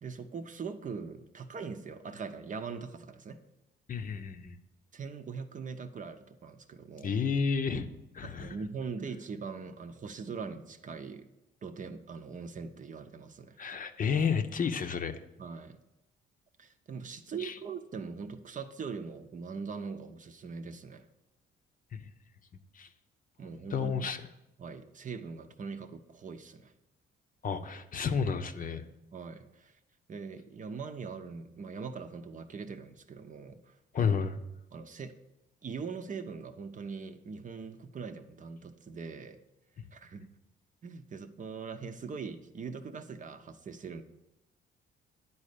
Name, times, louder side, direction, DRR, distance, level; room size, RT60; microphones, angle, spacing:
voice 1, 0.0-3.4 4.9-7.1 8.2-11.3 11.6-13.6 15.4-15.8 16.6-21.1 23.4-24.1 24.6-26.7 29.1-29.7 30.1-33.7 34.7-35.1 35.6-39.4 39.9-40.3 40.8-44.0, right 5 dB, 40° right, 8 dB, 0.7 m, -41 dB
voice 2, 3.9-4.6 7.0-7.9 8.1-8.5 13.6-15.2 17.4-17.5 21.9-22.0 22.8-22.9 23.7-24.2 27.4-28.8 33.9-34.4, left 6 dB, 45° left, 8 dB, 0.7 m, -31 dB
10.0 x 4.2 x 6.7 m, 0.93 s
cardioid pair, 90°, 20 cm